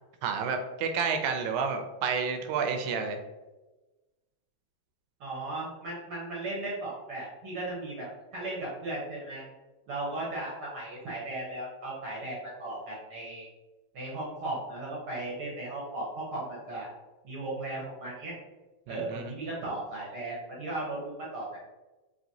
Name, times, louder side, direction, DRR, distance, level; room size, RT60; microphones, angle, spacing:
voice 1, 0.2-3.2 18.9-19.3, right 5 dB, 80° right, 5 dB, 1.9 m, -30 dB
voice 2, 5.2-9.4 9.9-13.5 13.9-16.9 17.2-18.3 18.9-21.6, right 2 dB, 65° right, -5 dB, 1.4 m, -36 dB
5.1 x 2.9 x 2.7 m, 1.1 s
omnidirectional pair, 3.5 m